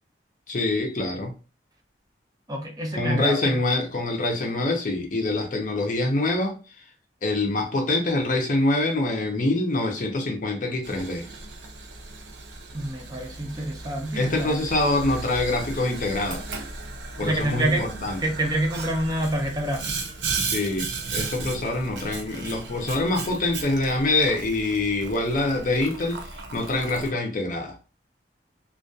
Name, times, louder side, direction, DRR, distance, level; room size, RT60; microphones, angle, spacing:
voice 1, 0.5-1.3 2.9-6.6 7.2-11.3 14.1-16.4 17.2-18.2 20.4-27.8, left 2 dB, 45° left, 0.5 m, -25 dB
voice 2, 2.5-3.6 12.7-14.6 17.2-19.9, right 1 dB, 20° right, 0.4 m, -27 dB
Boiling, 10.8-27.1, right 3 dB, 80° right, 0.5 m, -35 dB
2.3 x 2.2 x 2.6 m
head